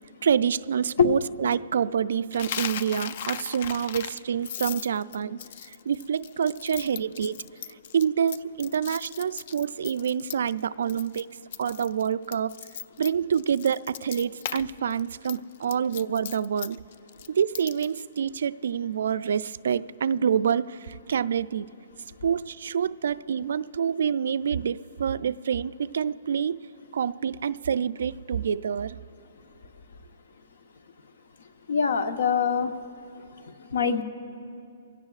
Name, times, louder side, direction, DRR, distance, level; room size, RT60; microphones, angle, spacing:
voice 1, 0.2-5.4 5.7-7.4 7.9-11.3 11.6-12.7 13.0-16.8 17.3-21.7 22.2-26.6 26.9-29.0, right 7 dB, 70° right, 16 dB, 0.3 m, -27 dB
Coin (dropping), 2.3-10.6 10.9-11.2 11.5-14.6 14.9-18.0, left 9 dB, 50° left, 0.4 m, -37 dB
voice 2, 31.7-32.7 33.4-34.0, left 6 dB, 85° left, 8 dB, 1.0 m, -23 dB
24.0 x 16.5 x 2.4 m, 2.5 s
hypercardioid pair, 160°, 0 cm